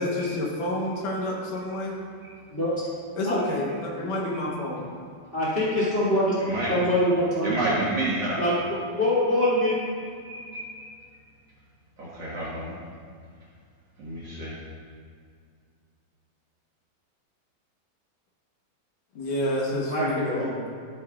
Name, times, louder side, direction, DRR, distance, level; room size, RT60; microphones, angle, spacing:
voice 1, 0.0-2.0 3.2-4.9 19.2-20.5, left 1 dB, 70° left, -3 dB, 2.5 m, -29 dB
voice 2, 5.3-6.4 6.7-7.6 8.4-8.5 9.0-9.7 19.9-20.7, left 1 dB, 20° right, -8 dB, 1.7 m, -24 dB
voice 3, 6.4-6.8 7.4-8.4 10.2-10.8 12.0-12.7 14.0-14.6, right 2 dB, 55° right, -8 dB, 2.0 m, -30 dB
13.0 x 7.9 x 2.4 m, 2.2 s
omnidirectional pair, 4.2 m